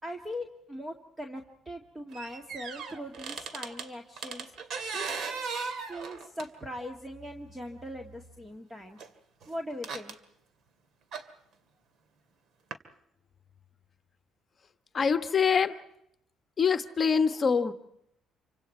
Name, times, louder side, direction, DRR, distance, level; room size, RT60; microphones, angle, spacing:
voice 1, 0.0-5.1 5.9-9.0 9.5-10.2, equal, 10° right, 3 dB, 1.9 m, -40 dB
sound 1, 2.1-3.9 4.2-6.7 7.6-7.7 9.0-9.1 9.4-10.1 11.1-11.2 12.7-12.8, right 5 dB, 60° right, 2.4 m, -37 dB
voice 2, 14.9-15.8 16.6-17.7, left 6 dB, 30° left, 9 dB, 1.3 m, -24 dB
28.0 x 25.0 x 4.5 m, 0.77 s
cardioid pair, 135°, 0 cm